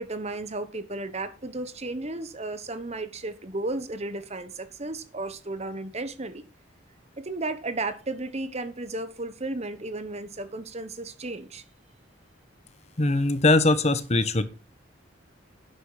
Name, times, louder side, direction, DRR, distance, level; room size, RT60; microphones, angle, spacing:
voice 1, 0.0-6.4 7.2-11.6, right 2 dB, 35° right, 1.1 m, -34 dB
voice 2, 13.0-14.4, left 2 dB, 35° left, 1.0 m, -21 dB
11.5 x 10.0 x 4.9 m
head